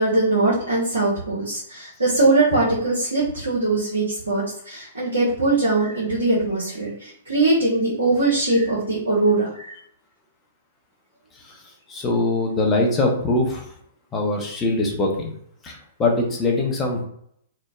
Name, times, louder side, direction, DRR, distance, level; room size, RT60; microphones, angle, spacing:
voice 1, 0.0-9.7, right 2 dB, 80° right, -8 dB, 0.9 m, -21 dB
voice 2, 11.9-13.7 14.1-15.3 15.6-17.0, left 2 dB, 20° left, 0 dB, 0.7 m, -22 dB
3.0 x 2.0 x 2.4 m, 0.67 s
figure-of-eight pair, 110°, 0 cm